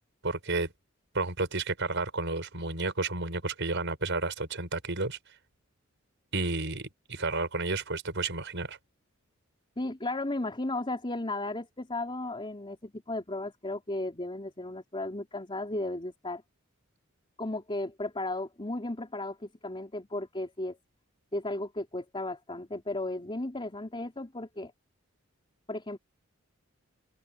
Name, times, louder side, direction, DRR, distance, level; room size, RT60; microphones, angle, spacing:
voice 1, 0.2-0.7 1.1-5.2 6.3-8.8, right 3 dB, 60° right, 6.1 m, -31 dB
voice 2, 9.8-16.4 17.4-20.8 21.3-24.7 25.7-26.0, left 2 dB, 25° left, 3.2 m, -35 dB
open air
head